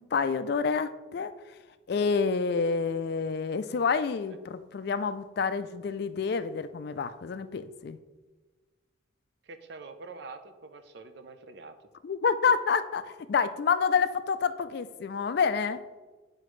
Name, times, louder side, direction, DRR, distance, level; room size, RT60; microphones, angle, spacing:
voice 1, 0.0-1.3 1.9-8.0 12.0-15.8, left 5 dB, 50° left, 12 dB, 0.3 m, -28 dB
voice 2, 9.4-11.8, right 3 dB, 55° right, 9 dB, 0.6 m, -45 dB
9.4 x 4.9 x 3.1 m, 1.3 s
head